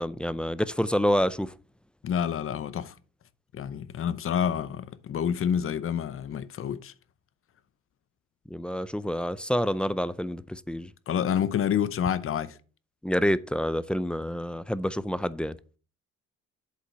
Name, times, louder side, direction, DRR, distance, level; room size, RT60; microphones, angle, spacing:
voice 1, 0.0-1.5 8.5-10.9 13.0-15.6, equal, 5° left, 0.3 m, -28 dB
voice 2, 2.0-2.9 3.5-6.9 11.1-12.6, left 8 dB, 45° left, 0.7 m, -28 dB
8.2 x 3.9 x 5.6 m
cardioid pair, 95°, 30 cm